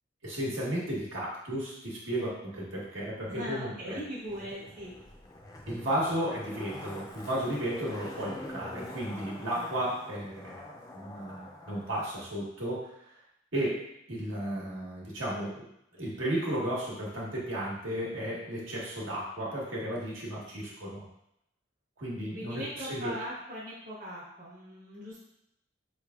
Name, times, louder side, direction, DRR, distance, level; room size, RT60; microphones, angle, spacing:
voice 1, 0.2-4.0 5.7-10.6 10.9-12.9 13.5-13.8 14.1-15.7 16.0-21.0 22.0-23.2, right 1 dB, 75° right, -5 dB, 1.2 m, -34 dB
voice 2, 3.3-4.9 22.3-25.2, equal, 40° right, -7 dB, 1.0 m, -40 dB
Zipper (clothing), 4.2-11.9 12.2-12.3, left 1 dB, 20° left, 0.5 m, -45 dB
4.4 x 3.2 x 2.3 m, 0.78 s
head